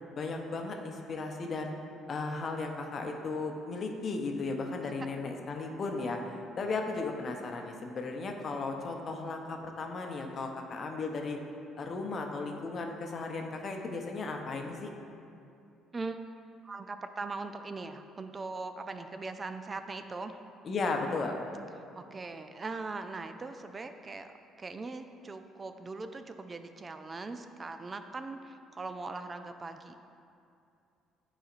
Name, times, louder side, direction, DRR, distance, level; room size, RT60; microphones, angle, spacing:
voice 1, 0.2-1.7 2.1-11.4 11.8-14.9 20.6-21.4, left 3 dB, 50° left, 3 dB, 0.7 m, -35 dB
voice 2, 16.6-20.4 21.9-29.9, right 3 dB, 35° right, 8 dB, 0.4 m, -40 dB
9.0 x 4.1 x 2.5 m, 2.6 s
hypercardioid pair, 60°, 0 cm